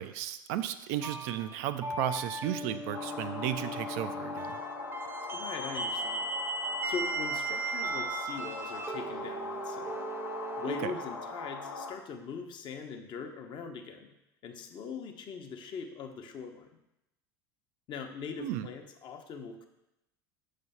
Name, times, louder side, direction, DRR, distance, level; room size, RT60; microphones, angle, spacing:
voice 1, 0.0-4.6 10.7-10.9 18.4-18.7, right 11 dB, 50° right, 11 dB, 0.4 m, -34 dB
sound 1, 1.0-11.2, right 2 dB, 20° right, 0.7 m, -37 dB
sound 2, 2.9-11.9, left 3 dB, 80° left, 0.7 m, -41 dB
voice 2, 5.3-6.2 6.8-10.0 10.6-14.1 14.4-16.7 17.9-19.7, left 5 dB, 40° left, 5 dB, 0.8 m, -41 dB
6.8 x 3.3 x 5.5 m, 0.89 s
figure-of-eight pair, 70°, 13 cm